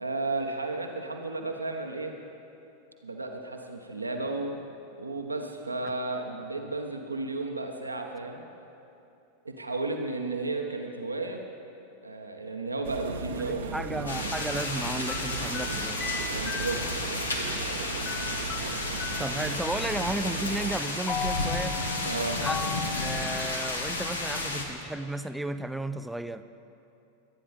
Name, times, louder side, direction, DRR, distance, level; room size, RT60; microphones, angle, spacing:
voice 1, 0.0-2.1 3.0-4.6 5.0-8.4 9.4-11.4 12.0-14.2 16.3-16.8 22.0-22.4, right 3 dB, 80° right, 3 dB, 1.3 m, -33 dB
sound 1, 12.8-20.7, right 4 dB, 65° right, 1.1 m, -37 dB
voice 2, 13.5-16.1 19.2-21.8 22.4-26.4, right 1 dB, 5° right, 11 dB, 0.5 m, -34 dB
sound 2, 14.0-14.2 15.1-17.1 18.1-19.6 21.1-23.6, left 5 dB, 25° left, 0.8 m, -37 dB
sound 3, 14.1-24.6, left 2 dB, 75° left, 1.7 m, -32 dB
22.5 x 9.9 x 5.2 m, 2.9 s
figure-of-eight pair, 90°, 0 cm